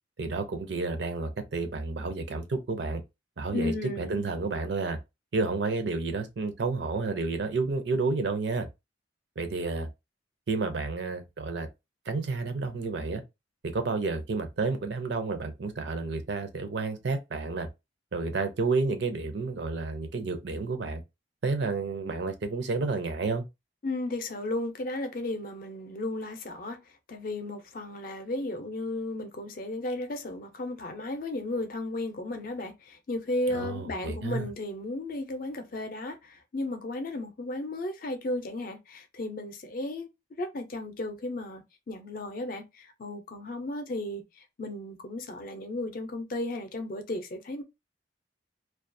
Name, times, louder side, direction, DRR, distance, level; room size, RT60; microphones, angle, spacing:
voice 1, 0.2-3.0 3.4-5.0 5.3-8.7 9.4-9.9 10.5-11.7 12.1-13.2 13.6-17.7 18.1-21.0 21.4-23.4 33.5-34.5, right 3 dB, 65° right, 0.5 m, -30 dB
voice 2, 3.5-4.2 23.8-26.8 27.1-40.1 40.4-47.6, left 2 dB, 50° left, 0.5 m, -34 dB
2.3 x 2.2 x 2.5 m
head